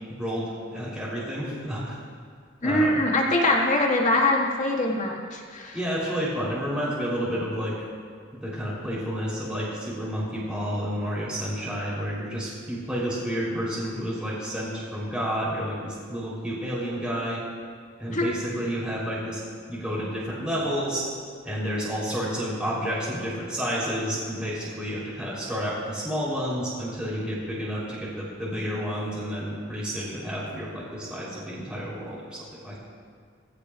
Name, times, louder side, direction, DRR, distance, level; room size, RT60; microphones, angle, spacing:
voice 1, 0.2-2.0 2.6-3.1 5.7-7.8 8.4-17.4 18.0-19.4 19.7-21.0 21.4-32.4 32.6-32.8, equal, 5° right, -8 dB, 3.7 m, -30 dB
voice 2, 2.6-5.8 18.1-18.3, left 2 dB, 35° left, -1 dB, 2.0 m, -23 dB
20.5 x 16.0 x 2.5 m, 2.1 s
head